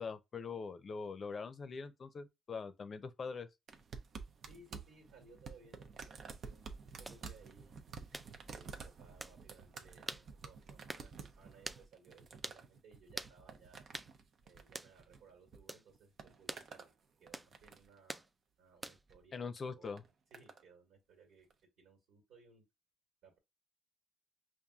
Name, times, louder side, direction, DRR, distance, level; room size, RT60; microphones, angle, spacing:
voice 1, 0.0-3.5 19.3-20.0, left 5 dB, 45° left, 0.6 m, -43 dB
sound 1, 3.7-15.6 15.9-16.9 17.3-18.0 18.9-19.2 20.0-20.6 21.5-21.6, right 5 dB, 60° right, 0.6 m, -51 dB
voice 2, 4.5-6.7 7.0-7.8 8.5-13.8 14.4-16.9 17.2-18.3 18.6-19.9 20.3-21.5 21.8-22.6 23.2-23.4, right 4 dB, 90° right, 1.7 m, -62 dB
sound 2, 7.0-7.2 8.1-8.3 9.2-9.4 10.1-10.3 10.9-11.1 11.6-11.8 12.4-12.6 13.2-13.4 13.9-14.1 14.7-14.9 15.7-15.9 16.5-16.7 17.3-17.5 18.1-18.3 18.8-19.1, right 1 dB, 15° right, 0.3 m, -44 dB
5.4 x 2.6 x 2.4 m
cardioid pair, 90°, 0 cm